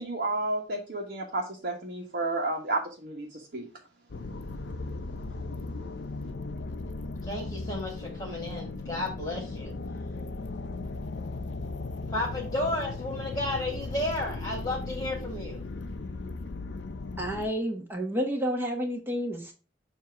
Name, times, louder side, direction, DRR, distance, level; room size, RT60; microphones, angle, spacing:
voice 1, 0.0-3.7, right 2 dB, 55° right, -2 dB, 1.3 m, -31 dB
sound 1, 4.1-17.5, left 3 dB, 75° left, 0.6 m, -37 dB
voice 2, 7.2-9.8 12.1-15.6, left 1 dB, 20° left, -2 dB, 2.0 m, -33 dB
voice 3, 17.2-19.5, equal, 10° right, 1 dB, 1.4 m, -30 dB
7.3 x 2.9 x 5.7 m, 0.34 s
head